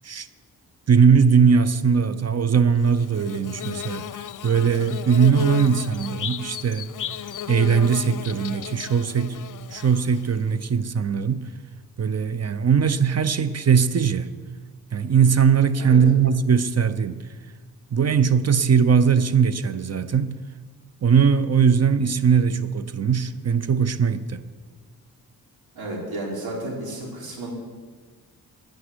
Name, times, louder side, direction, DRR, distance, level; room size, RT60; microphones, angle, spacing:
voice 1, 0.9-4.0 4.4-6.9 7.5-9.4 9.7-11.5 12.0-14.3 14.9-17.2 17.9-20.3 21.0-24.4, right 6 dB, 45° right, 0.8 m, -20 dB
Bird / Buzz, 2.8-10.5, left 10 dB, 60° left, 0.6 m, -34 dB
voice 2, 25.7-27.5, right 1 dB, 85° right, 4.1 m, -32 dB
10.5 x 9.5 x 9.9 m
cardioid pair, 75°, 36 cm